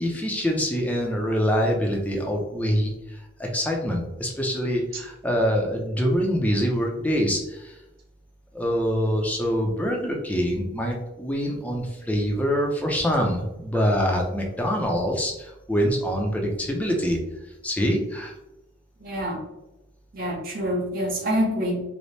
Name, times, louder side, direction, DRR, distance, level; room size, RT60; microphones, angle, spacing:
voice 1, 0.0-2.9 3.4-7.7 8.5-17.2 17.6-18.3, equal, 10° left, 0 dB, 0.5 m, -25 dB
voice 2, 19.0-19.4 20.1-21.8, equal, 50° right, -1 dB, 0.8 m, -26 dB
4.1 x 2.1 x 3.2 m, 0.95 s
head